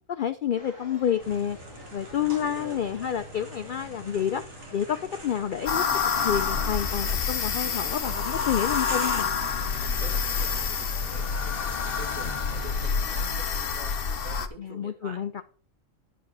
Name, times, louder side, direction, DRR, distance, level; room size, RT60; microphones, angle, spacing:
voice 1, 0.1-1.6 1.9-4.4 4.7-5.8 6.2-9.4 14.6-15.4, left 9 dB, 70° left, 10 dB, 0.4 m, -29 dB
sound 1, 0.5-13.3, equal, 35° right, 3.6 m, -49 dB
sound 2, 1.2-12.4, right 1 dB, 60° right, 2.8 m, -44 dB
voice 2, 2.1-2.8 9.8-15.4, right 3 dB, 85° right, 2 dB, 2.5 m, -46 dB
sound 3, 5.7-14.5, left 6 dB, 50° left, 0.9 m, -28 dB
10.0 x 5.0 x 6.0 m, 0.43 s
omnidirectional pair, 1.4 m